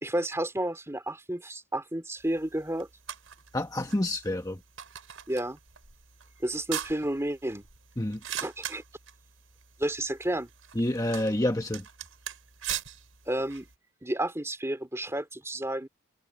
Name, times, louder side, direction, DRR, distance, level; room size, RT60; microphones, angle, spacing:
voice 1, 0.0-2.9 5.3-5.6 6.4-7.6 8.4-8.8 9.8-10.5 13.3-13.7 14.0-15.9, right 1 dB, 15° right, 2.6 m, -31 dB
sound 1, 2.2-13.7, right 10 dB, 70° right, 6.6 m, -42 dB
voice 2, 3.5-4.6 8.0-8.2 10.7-11.8, left 1 dB, 15° left, 1.2 m, -28 dB
head